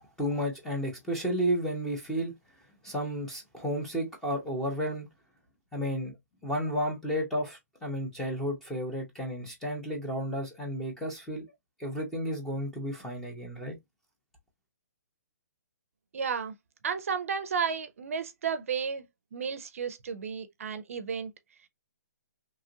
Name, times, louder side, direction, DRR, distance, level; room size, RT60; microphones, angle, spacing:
voice 1, 0.2-2.3 2.8-5.1 5.7-6.2 6.4-11.5 11.8-13.8, equal, 5° left, 0.7 m, -32 dB
voice 2, 16.1-16.5 16.8-19.1 19.3-21.3, right 6 dB, 55° right, 0.5 m, -32 dB
2.9 x 2.4 x 2.7 m
hypercardioid pair, 165°, 9 cm